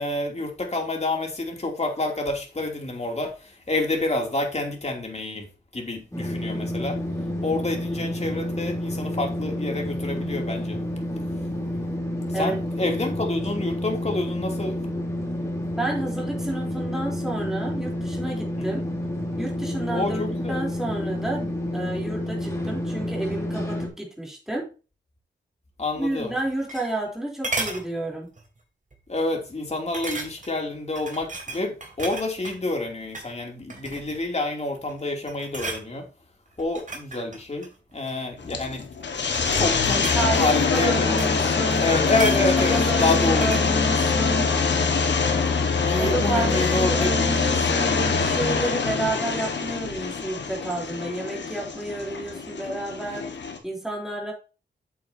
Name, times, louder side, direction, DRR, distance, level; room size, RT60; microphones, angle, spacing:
voice 1, 0.0-5.5 5.7-7.0 7.4-10.8 12.3-14.8 18.6-18.8 19.9-20.6 25.8-26.3 29.1-36.1 36.6-38.9 39.6-41.2 41.8-43.5 45.8-47.1, left 2 dB, 35° left, 3.1 m, -28 dB
sound 1, 6.1-23.9, left 1 dB, 15° left, 3.6 m, -29 dB
voice 2, 15.8-18.9 19.4-24.7 26.0-28.3 40.2-41.9 42.3-44.5 46.0-53.3 53.6-54.3, right 2 dB, ahead, 3.8 m, -30 dB
sound 2, 26.3-27.2 27.4-27.9 28.4-28.6 28.9-29.0 29.9-30.6 31.0-32.6 33.0-33.3 33.7-34.2 34.7-35.0 35.3-35.9 36.6-38.2 39.0-41.4 41.7-43.7 44.0-44.1, right 3 dB, 45° right, 2.7 m, -34 dB
sound 3, 38.4-53.6, left 4 dB, 75° left, 1.7 m, -24 dB
8.9 x 7.7 x 2.9 m
cardioid pair, 65°, 19 cm